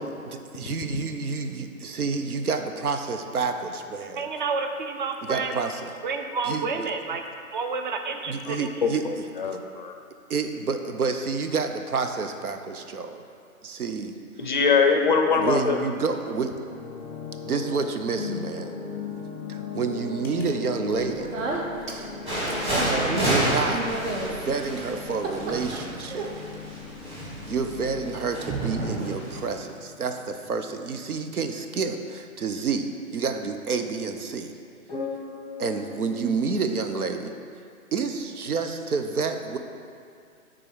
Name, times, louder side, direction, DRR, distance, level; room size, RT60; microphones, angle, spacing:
voice 1, 0.0-4.3 5.2-5.9 6.5-6.7 8.3-9.3 9.5-9.6 10.3-13.2 13.6-14.2 15.4-16.5 17.4-18.7 19.5-21.4 23.2-23.8 24.3-26.3 27.5-34.5 35.6-37.3 37.9-39.6, right 4 dB, 85° right, 7 dB, 0.8 m, -29 dB
voice 2, 4.2-5.6 6.0-7.2 7.5-8.9, right 4 dB, 35° right, 5 dB, 0.5 m, -30 dB
voice 3, 9.4-9.9 14.4-15.8, left 5 dB, 35° left, 4 dB, 0.4 m, -22 dB
sound 1, 16.7-32.2 32.5-32.7 34.9-36.6, left 5 dB, 5° left, 0.8 m, -39 dB
Speech, 20.9-27.0, right 2 dB, 60° right, 1.2 m, -33 dB
sound 2, 22.3-29.5, right 1 dB, 10° right, 1.6 m, -29 dB
9.8 x 3.8 x 4.7 m, 2.4 s
hypercardioid pair, 140°, 43 cm